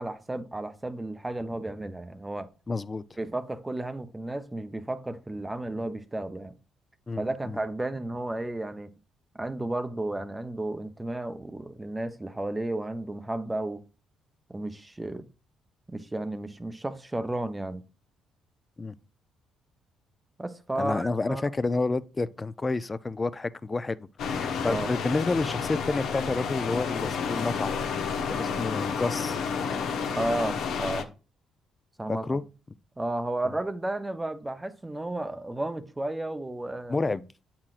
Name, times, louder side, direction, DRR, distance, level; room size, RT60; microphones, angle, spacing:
voice 1, 0.0-2.5 3.2-6.5 7.2-8.9 9.4-13.8 14.5-15.3 15.9-17.8 20.4-21.4 24.6-24.9 30.1-31.1 32.0-32.4 33.0-37.0, right 1 dB, 15° right, 0.6 m, -33 dB
voice 2, 2.7-3.0 7.1-7.6 18.8-18.9 20.8-24.0 24.2-27.7 28.3-29.4 32.1-32.4 33.4-33.5 36.9-37.2, left 3 dB, 25° left, 0.4 m, -29 dB
sound 1, 24.2-31.0, left 6 dB, 75° left, 0.8 m, -30 dB
8.5 x 5.8 x 2.4 m
cardioid pair, 75°, 0 cm